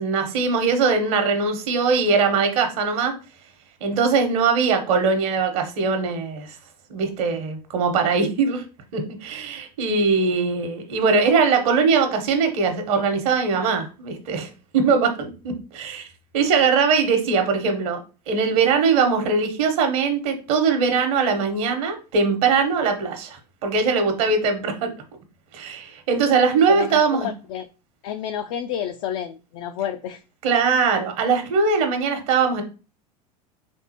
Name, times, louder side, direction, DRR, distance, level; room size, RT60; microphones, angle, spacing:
voice 1, 0.0-3.1 3.8-6.6 6.9-8.6 8.9-16.1 16.3-18.0 18.3-24.9 25.5-27.3 30.4-32.6, right 5 dB, 55° right, 6 dB, 1.1 m, -21 dB
voice 2, 26.7-27.7 28.0-30.2, left 9 dB, 55° left, 7 dB, 0.4 m, -30 dB
3.9 x 3.5 x 2.9 m, 0.33 s
figure-of-eight pair, 80°, 21 cm